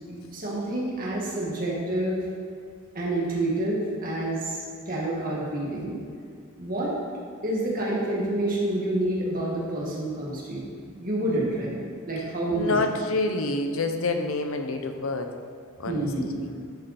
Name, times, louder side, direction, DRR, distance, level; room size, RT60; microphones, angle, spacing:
voice 1, 0.1-2.3 2.9-4.6 4.9-6.0 6.6-6.9 7.4-11.8 12.0-12.8 15.9-16.3, right 1 dB, 40° right, -4 dB, 2.0 m, -28 dB
voice 2, 12.5-15.3 15.8-16.3, left 2 dB, 85° left, 6 dB, 0.8 m, -27 dB
11.5 x 5.4 x 4.3 m, 2.2 s
head